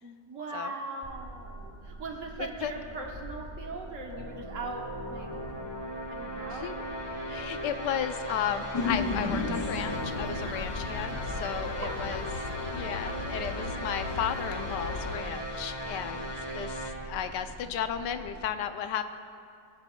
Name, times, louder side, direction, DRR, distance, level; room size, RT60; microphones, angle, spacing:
voice 1, 0.0-5.3 6.1-6.7 11.1-11.3 11.8-12.3 17.2-17.4, right 3 dB, 50° right, 1 dB, 1.3 m, -40 dB
sound 1, 1.0-18.5, right 1 dB, 5° left, 2.3 m, -45 dB
voice 2, 2.4-2.7 6.5-6.8 7.3-12.3 12.7-19.0, left 9 dB, 85° left, 9 dB, 1.2 m, -34 dB
sound 2, 4.1-16.9, equal, 20° left, 0.8 m, -37 dB
sound 3, 8.7-15.2, left 4 dB, 65° left, 1.2 m, -35 dB
18.5 x 10.5 x 2.2 m, 2.4 s
omnidirectional pair, 1.8 m